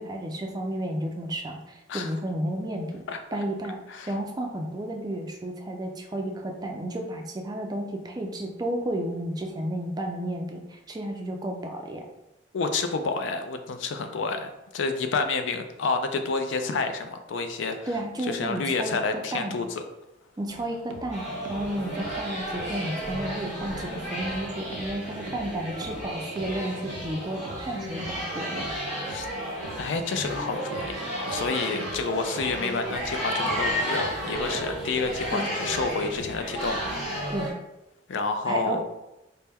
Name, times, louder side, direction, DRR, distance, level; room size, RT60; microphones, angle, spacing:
voice 1, 0.0-3.0 3.3-3.8 4.1-12.0 17.9-19.6 20.4-28.7 35.3-35.5 37.3-37.5 38.5-38.8, right 1 dB, 20° right, 2 dB, 0.4 m, -32 dB
voice 2, 12.5-17.9 18.2-19.8 29.1-29.3 29.8-30.9 31.3-36.8 38.1-38.8, left 4 dB, 70° left, 7 dB, 0.4 m, -29 dB
sound 1, 20.5-37.3, right 2 dB, 90° right, 0.5 m, -44 dB
sound 2, 21.1-37.5, equal, 35° left, 1.3 m, -33 dB
4.3 x 2.1 x 3.4 m, 0.94 s
head